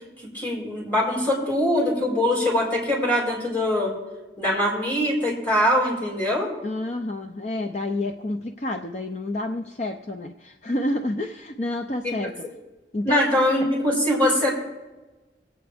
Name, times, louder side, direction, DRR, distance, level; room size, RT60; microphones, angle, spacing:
voice 1, 0.3-3.9 4.4-6.5 12.0-12.3 13.0-14.5, left 1 dB, 10° left, -5 dB, 4.7 m, -22 dB
voice 2, 6.6-12.4 12.9-13.3 13.6-13.7, left 1 dB, 40° left, 5 dB, 0.6 m, -29 dB
24.0 x 8.9 x 3.5 m, 1.2 s
head